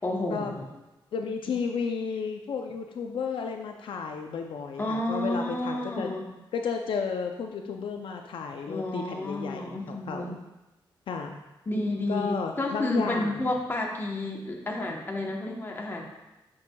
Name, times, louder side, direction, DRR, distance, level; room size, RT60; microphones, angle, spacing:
voice 1, 0.0-0.6 4.8-6.3 8.7-10.4 11.7-16.0, left 1 dB, 25° left, 0 dB, 1.0 m, -31 dB
voice 2, 1.1-6.1 6.5-10.4 11.1-11.4 12.1-13.4, left 5 dB, 75° left, 4 dB, 0.5 m, -33 dB
8.4 x 6.2 x 2.3 m, 1.0 s
wide cardioid pair, 135°, 9 cm